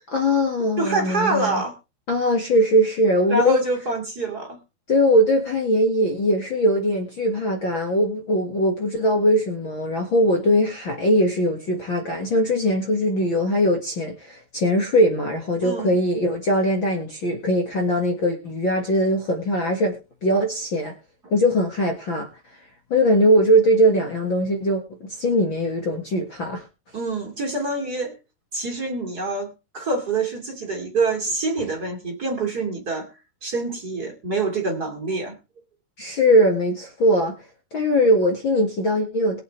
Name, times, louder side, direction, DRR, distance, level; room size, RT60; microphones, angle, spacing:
voice 1, 0.1-1.6 2.1-3.6 4.9-20.0 20.2-20.9 21.3-22.3 22.9-26.6 36.0-37.4 37.7-39.4, equal, 40° left, 2.1 m, -21 dB
voice 2, 0.8-1.7 3.3-4.6 15.6-16.0 26.9-28.2 28.5-33.1 33.4-35.4, right 3 dB, 30° right, 2.7 m, -26 dB
22.0 x 7.7 x 3.3 m
omnidirectional pair, 3.9 m